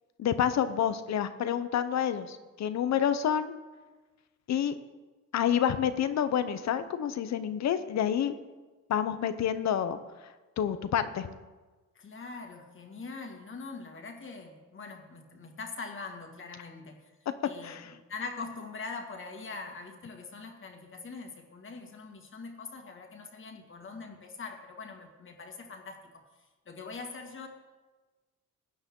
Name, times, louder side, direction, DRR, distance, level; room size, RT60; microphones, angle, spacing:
voice 1, 0.2-3.5 4.5-4.7 5.3-8.3 8.9-10.0 10.6-11.3 17.6-17.9, left 9 dB, 65° left, 11 dB, 0.9 m, -28 dB
voice 2, 12.0-17.1 17.4-26.2 26.7-27.5, left 4 dB, 40° left, 3 dB, 2.0 m, -43 dB
16.0 x 9.6 x 3.8 m, 1.2 s
cardioid pair, 90°, 30 cm